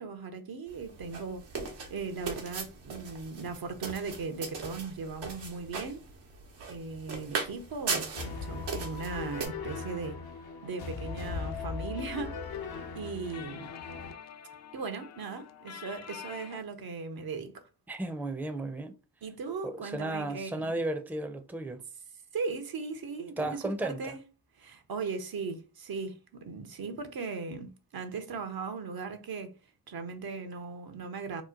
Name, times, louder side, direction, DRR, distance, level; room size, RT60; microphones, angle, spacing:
voice 1, 0.0-1.4 1.9-6.0 6.7-10.2 10.6-12.4 12.9-13.7 14.7-17.7 19.2-20.7 22.3-24.2 24.5-29.5 29.9-31.4, right 4 dB, 60° right, 0.8 m, -38 dB
sound 1, 0.7-9.5, right 5 dB, 75° right, 1.1 m, -39 dB
sound 2, 8.2-14.1, left 5 dB, 60° left, 0.8 m, -39 dB
sound 3, 10.7-16.6, left 8 dB, 40° left, 0.4 m, -48 dB
voice 2, 17.9-18.9 19.6-21.8 23.4-24.1, right 2 dB, 5° right, 0.6 m, -34 dB
3.0 x 2.1 x 3.7 m
supercardioid pair, 45°, 42 cm